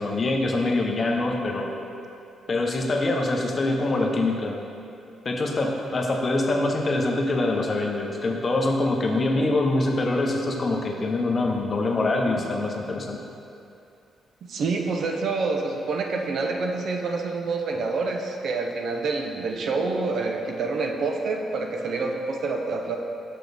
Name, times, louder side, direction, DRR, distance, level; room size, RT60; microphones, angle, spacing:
voice 1, 0.0-1.7 2.5-4.6 5.2-13.2, left 2 dB, 35° left, 1 dB, 0.7 m, -24 dB
voice 2, 14.5-23.0, right 3 dB, 65° right, 2 dB, 0.6 m, -27 dB
6.6 x 6.0 x 3.4 m, 2.6 s
cardioid pair, 100°, 0 cm